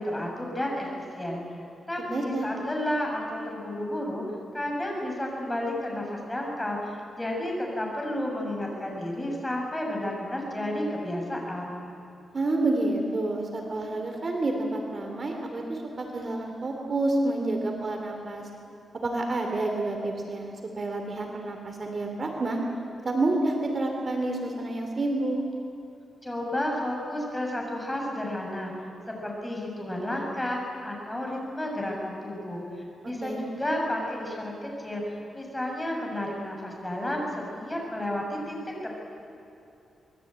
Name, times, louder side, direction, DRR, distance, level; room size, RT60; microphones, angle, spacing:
voice 1, 0.0-1.6 1.9-4.2 4.5-11.8 26.2-28.7 29.1-39.0, left 1 dB, 10° left, 0 dB, 6.8 m, -32 dB
voice 2, 2.0-2.5 12.3-18.4 18.9-22.6 23.0-25.4 33.0-33.5, right 2 dB, 40° right, 2 dB, 3.1 m, -29 dB
25.5 x 21.5 x 9.0 m, 2.8 s
wide cardioid pair, 115°, 0 cm